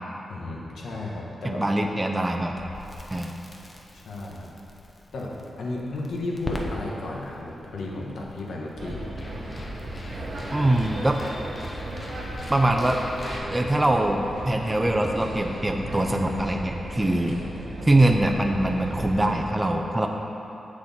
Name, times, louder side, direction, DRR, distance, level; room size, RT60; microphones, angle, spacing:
voice 1, 0.3-1.6 3.9-4.5 5.1-9.1, left 2 dB, 80° left, -2 dB, 1.2 m, -34 dB
voice 2, 1.4-2.5 3.1-3.3 10.5-11.2 12.5-13.0 13.5-17.4 17.8-20.1, right 1 dB, 15° right, 2 dB, 0.5 m, -23 dB
Crackle, 2.6-13.4, left 2 dB, 30° left, 0.8 m, -41 dB
sound 1, 8.8-19.5, right 1 dB, 65° right, 1.2 m, -35 dB
7.5 x 6.5 x 4.2 m, 2.9 s
wide cardioid pair, 105°, 0 cm